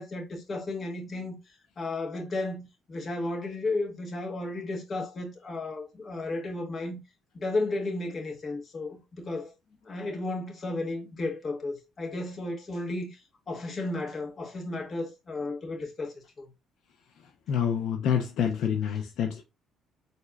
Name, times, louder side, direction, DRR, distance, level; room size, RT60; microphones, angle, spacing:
voice 1, 0.0-1.4 1.8-7.0 7.3-9.5 9.8-13.2 13.5-16.5, left 2 dB, 35° left, 1.4 m, -33 dB
voice 2, 17.5-19.4, left 8 dB, 75° left, 0.9 m, -27 dB
4.1 x 2.8 x 3.6 m
cardioid pair, 100°, 0 cm